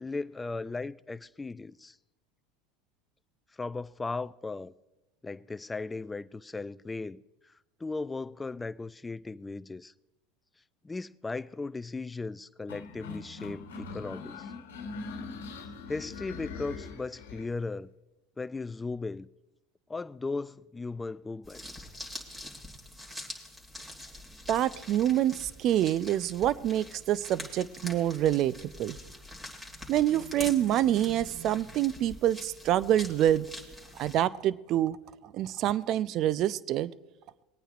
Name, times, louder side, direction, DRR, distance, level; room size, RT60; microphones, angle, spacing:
voice 1, 0.0-2.0 3.6-4.7 5.2-7.5 7.8-9.9 10.8-14.5 15.9-17.9 18.4-19.3 19.9-21.9, left 3 dB, 15° left, 0.4 m, -37 dB
sound 1, 12.7-17.5, left 4 dB, 85° left, 1.2 m, -42 dB
sound 2, 21.4-34.2, left 1 dB, 10° right, 2.3 m, -45 dB
voice 2, 24.5-29.0 29.9-33.5 34.0-35.0 35.2-36.9, right 12 dB, 50° right, 0.4 m, -26 dB
20.5 x 9.0 x 2.5 m
hypercardioid pair, 95°, 0 cm